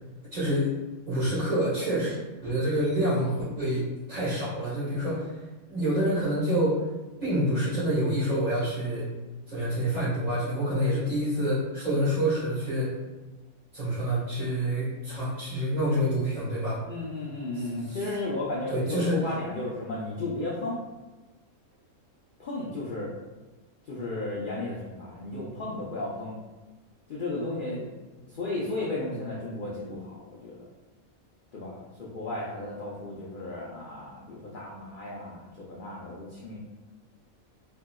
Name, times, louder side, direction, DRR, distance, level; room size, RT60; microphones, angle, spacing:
voice 1, 0.3-0.7 1.0-2.2 2.4-5.4 5.7-6.9 7.2-9.0 9.5-12.9 13.7-16.8 17.5-18.0 18.7-19.2, equal, 30° right, -13 dB, 1.7 m, -27 dB
voice 2, 16.9-20.8 22.4-23.1 23.9-26.3 27.1-27.8 28.3-30.6 31.5-36.6, left 2 dB, 65° left, -5 dB, 0.5 m, -34 dB
3.7 x 2.7 x 2.2 m, 1.2 s
omnidirectional pair, 1.5 m